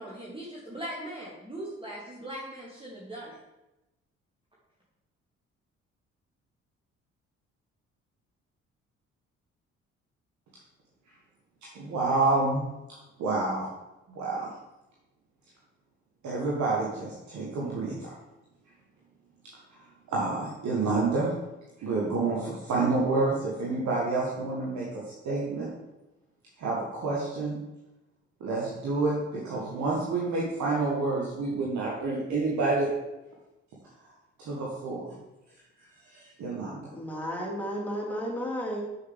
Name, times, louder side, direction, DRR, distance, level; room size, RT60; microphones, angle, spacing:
voice 1, 0.0-3.4, right 1 dB, 15° right, -5 dB, 1.8 m, -39 dB
voice 2, 11.7-12.7 13.2-13.7 14.1-14.5 16.2-18.1 20.1-21.3 21.8-25.7 26.6-27.6 28.4-32.9 34.4-35.1 36.0-36.8, right 3 dB, 50° right, -5 dB, 1.6 m, -28 dB
voice 3, 36.9-38.8, equal, 5° left, -3 dB, 2.2 m, -33 dB
7.2 x 6.6 x 3.5 m, 0.99 s
figure-of-eight pair, 45°, 37 cm